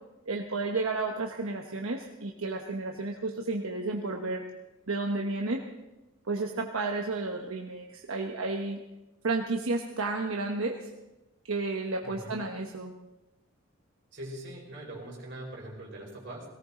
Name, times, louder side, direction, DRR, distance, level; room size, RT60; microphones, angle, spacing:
voice 1, 0.3-4.4 4.9-5.6 6.3-8.8 9.2-10.9 11.4-12.9, right 3 dB, 85° right, 2 dB, 1.1 m, -32 dB
voice 2, 12.0-12.4 14.1-16.4, right 1 dB, 60° right, -2 dB, 5.2 m, -42 dB
18.0 x 17.5 x 3.8 m, 1.0 s
head